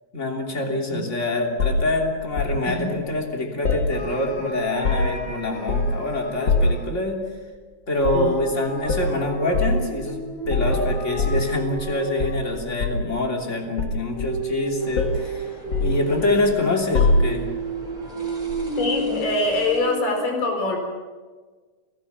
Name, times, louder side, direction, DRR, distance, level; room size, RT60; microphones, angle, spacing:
voice 1, 0.1-7.2 7.9-17.5, left 2 dB, 20° left, 2 dB, 3.2 m, -25 dB
sound 1, 1.6-2.6 3.6-4.4 4.7-5.3 5.7-6.0 6.5-6.9 8.0-8.3 8.9-9.1 9.5-9.8 10.5-11.9 12.2-13.1 13.8-14.6 15.0-15.3 15.7-16.5 16.9-17.6 18.5-18.7, left 2 dB, 40° left, 2.3 m, -23 dB
sound 2, 3.9-6.9 7.9-12.7 14.1-20.2, right 1 dB, 60° left, 5.6 m, -32 dB
sound 3, 14.8-19.8, right 1 dB, 15° right, 4.5 m, -42 dB
voice 2, 18.8-20.8, left 2 dB, 85° left, 3 dB, 6.2 m, -24 dB
29.5 x 17.0 x 7.3 m, 1.4 s
omnidirectional pair, 3.8 m